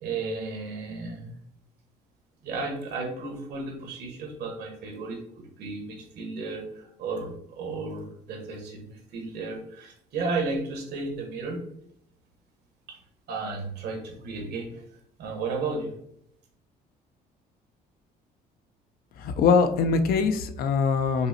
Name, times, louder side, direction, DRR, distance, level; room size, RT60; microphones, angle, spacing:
voice 1, 0.0-1.3 2.4-5.2 5.6-11.6 12.9-13.0 13.3-14.8 15.2-15.9, right 3 dB, 75° right, 2 dB, 1.1 m, -33 dB
voice 2, 19.2-21.3, left 5 dB, 60° left, 8 dB, 0.4 m, -22 dB
5.4 x 2.1 x 2.6 m, 0.71 s
cardioid pair, 110°, 17 cm